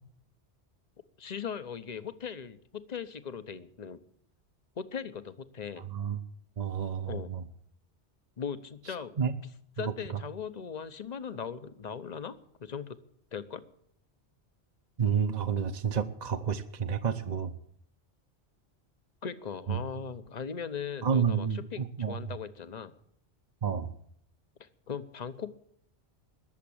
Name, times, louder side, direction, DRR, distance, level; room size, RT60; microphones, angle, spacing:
voice 1, 1.2-4.0 4.8-5.9 7.1-7.3 8.4-9.1 9.4-9.5 9.8-13.0 13.3-13.6 19.2-23.0 24.6-25.5, left 7 dB, 40° left, 12 dB, 1.0 m, -39 dB
voice 2, 6.6-7.4 9.2-9.3 9.8-9.9 15.0-17.6 19.7-19.8 21.0-22.2 23.6-23.9, right 7 dB, 40° right, 7 dB, 0.9 m, -30 dB
20.5 x 7.4 x 8.7 m, 0.65 s
omnidirectional pair, 1.2 m